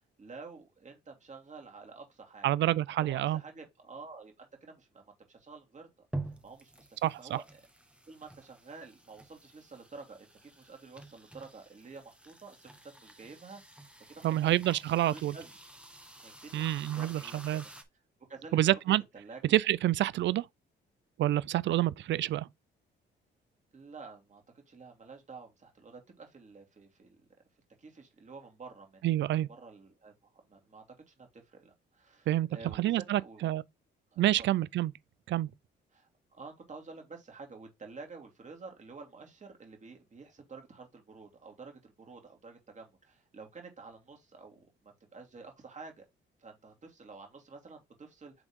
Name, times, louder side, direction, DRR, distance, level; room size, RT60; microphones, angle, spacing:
voice 1, 0.2-2.5 3.0-5.9 6.4-7.6 8.1-13.6 14.1-14.8 15.1-15.6 16.2-17.6 18.3-19.6 23.7-27.3 27.8-29.1 29.6-30.1 30.4-33.5 34.1-34.5 35.9-46.0 46.4-48.3, right 4 dB, 35° right, 2.5 m, -50 dB
voice 2, 2.4-3.4 7.0-7.4 14.2-15.4 16.5-17.6 18.5-19.0 19.5-20.5 21.2-22.5 29.0-29.5 32.3-32.5 32.8-33.6 34.2-34.9 35.3-35.5, right 14 dB, 65° right, 0.5 m, -28 dB
sound 1, 6.1-17.8, right 2 dB, 5° right, 1.2 m, -48 dB
7.9 x 3.6 x 3.6 m
cardioid pair, 90°, 20 cm